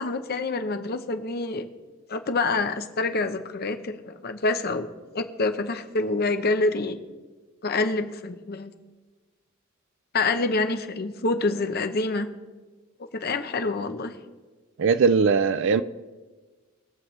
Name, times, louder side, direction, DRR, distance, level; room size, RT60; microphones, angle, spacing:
voice 1, 0.0-1.7 2.1-7.0 7.6-8.7 10.1-12.3 13.1-14.1, left 3 dB, 50° left, 0.8 m, -27 dB
voice 2, 14.8-15.8, right 5 dB, 65° right, 0.4 m, -20 dB
21.5 x 7.1 x 3.2 m
head